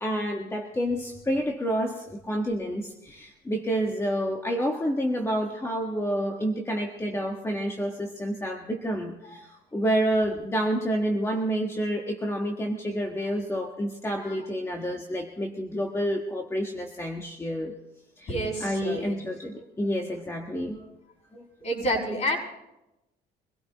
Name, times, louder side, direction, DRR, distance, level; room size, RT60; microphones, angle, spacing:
voice 1, 0.0-17.7 18.2-18.3 18.6-20.8 21.3-21.4, equal, 15° left, 2 dB, 1.5 m, -29 dB
voice 2, 18.2-19.2 21.6-22.4, equal, 45° left, -1 dB, 7.3 m, -29 dB
25.0 x 17.0 x 3.0 m, 0.92 s
cardioid pair, 110°, 17 cm